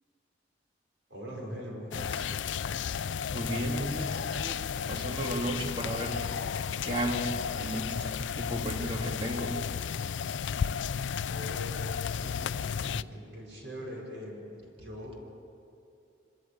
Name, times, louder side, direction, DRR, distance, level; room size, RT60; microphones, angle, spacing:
voice 1, 1.1-2.3 11.3-14.4 14.8-15.2, equal, 80° right, -2 dB, 5.8 m, -42 dB
sound 1, 1.9-13.0, left 7 dB, 85° left, 0.4 m, -33 dB
voice 2, 2.9-4.6 4.9-6.2 6.8-9.9, right 1 dB, 30° right, 1 dB, 2.3 m, -34 dB
25.5 x 13.5 x 8.6 m, 2.7 s
head